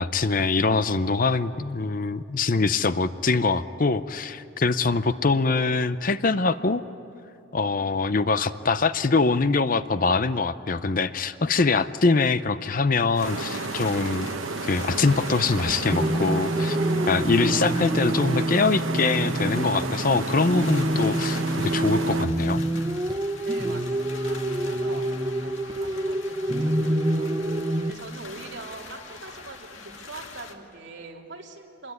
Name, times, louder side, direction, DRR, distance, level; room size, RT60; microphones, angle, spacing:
voice 1, 0.0-6.8 7.5-14.3 14.6-16.8 17.1-22.6, left 4 dB, 45° left, 13 dB, 0.6 m, -23 dB
sound 1, 13.1-30.5, left 5 dB, 75° left, 2.2 m, -44 dB
sound 2, 13.2-22.3, right 3 dB, 85° right, 1.1 m, -32 dB
sound 3, 15.9-27.9, right 1 dB, 20° right, 0.7 m, -27 dB
voice 2, 23.4-27.5 27.9-31.9, right 3 dB, 60° right, 0 dB, 3.1 m, -43 dB
25.5 x 21.0 x 9.7 m, 2.8 s
head